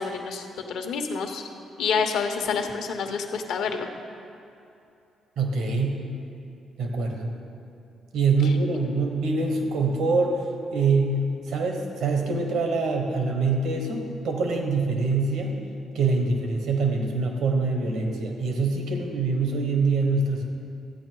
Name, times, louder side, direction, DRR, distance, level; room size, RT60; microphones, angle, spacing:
voice 1, 0.0-1.4 1.8-3.9 8.4-8.5, left 5 dB, 85° left, 4 dB, 1.0 m, -28 dB
voice 2, 5.4-6.1 6.8-7.3 8.1-10.4 10.7-15.6 15.9-20.4, right 3 dB, 80° right, 3 dB, 1.4 m, -24 dB
13.0 x 8.9 x 4.7 m, 2.7 s
cardioid pair, 90°, 0 cm